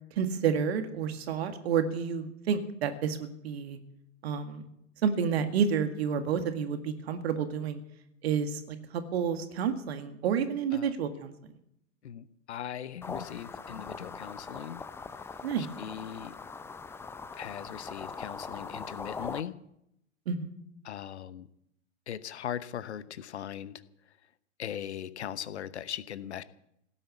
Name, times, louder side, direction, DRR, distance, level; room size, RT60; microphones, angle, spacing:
voice 1, 0.2-3.8 4.2-4.6 5.0-7.8 8.2-11.3 15.4-15.7 20.3-20.5, right 7 dB, 55° right, 8 dB, 2.0 m, -30 dB
voice 2, 12.0-14.8 15.6-16.3 17.4-19.6 20.8-21.5 22.1-23.8 24.6-26.4, left 10 dB, 60° left, 16 dB, 1.0 m, -39 dB
sound 1, 13.0-19.4, left 4 dB, 5° left, 0.5 m, -41 dB
17.0 x 10.0 x 8.2 m, 0.78 s
figure-of-eight pair, 95°, 38 cm